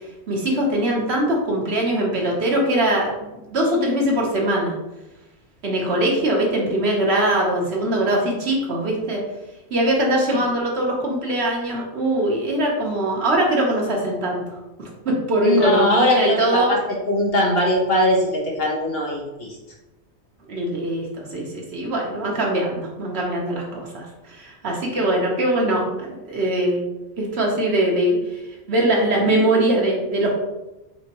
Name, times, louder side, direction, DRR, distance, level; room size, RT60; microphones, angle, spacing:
voice 1, 0.3-4.7 5.6-9.2 9.7-14.4 14.8-16.7 20.5-26.8 27.2-28.2 28.7-30.3, right 1 dB, 70° right, -1 dB, 1.3 m, -22 dB
voice 2, 15.4-16.8 17.1-19.6, left 1 dB, 60° left, -2 dB, 1.3 m, -20 dB
4.3 x 4.2 x 2.9 m, 0.99 s
omnidirectional pair, 1.1 m